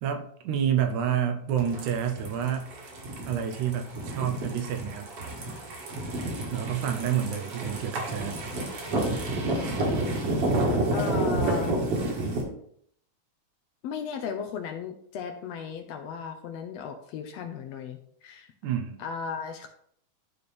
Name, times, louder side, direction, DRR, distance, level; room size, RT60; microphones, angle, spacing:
voice 1, 0.0-2.7 3.3-5.1 6.5-8.4 18.6-19.0, right 9 dB, 85° right, 6 dB, 2.3 m, -29 dB
sound 1, 1.6-12.4, right 2 dB, 55° right, 2.5 m, -30 dB
voice 2, 10.9-11.8 13.8-18.5 19.0-19.7, left 6 dB, 75° left, 5 dB, 1.6 m, -36 dB
12.0 x 4.3 x 3.4 m, 0.65 s
omnidirectional pair, 3.4 m